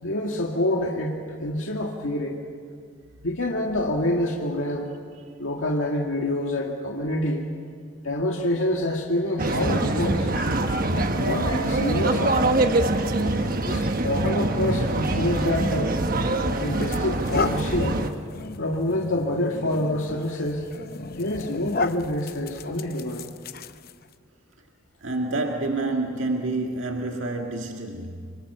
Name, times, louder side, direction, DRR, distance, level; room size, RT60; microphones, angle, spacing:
voice 1, 0.0-2.4 3.2-4.9 5.4-7.5 8.0-10.3 10.9-12.4 13.6-16.0 16.6-18.0 18.6-20.7 21.2-23.3, left 1 dB, 85° left, -1 dB, 2.1 m, -27 dB
sound 1, 9.4-18.1, right 2 dB, 45° right, 1.2 m, -24 dB
sound 2, 16.0-16.2 16.7-24.1, left 3 dB, 50° left, 0.7 m, -34 dB
voice 2, 25.0-28.4, right 2 dB, 75° right, 2 dB, 1.8 m, -28 dB
26.0 x 25.0 x 6.9 m, 2.1 s
head